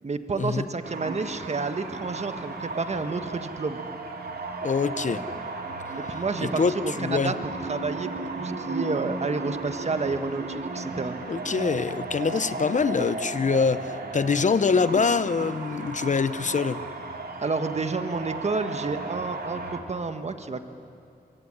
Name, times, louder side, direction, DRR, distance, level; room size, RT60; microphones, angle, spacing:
voice 1, 0.0-3.8 6.0-11.1 17.4-20.6, right 4 dB, 45° right, 8 dB, 1.5 m, -30 dB
sound 1, 0.8-19.8, right 3 dB, 75° right, 2.7 m, -35 dB
voice 2, 4.6-5.2 6.4-6.7 7.0-7.3 11.3-16.8, left 5 dB, 50° left, 13 dB, 0.9 m, -24 dB
25.0 x 23.0 x 9.9 m, 2.5 s
wide cardioid pair, 90°, 16 cm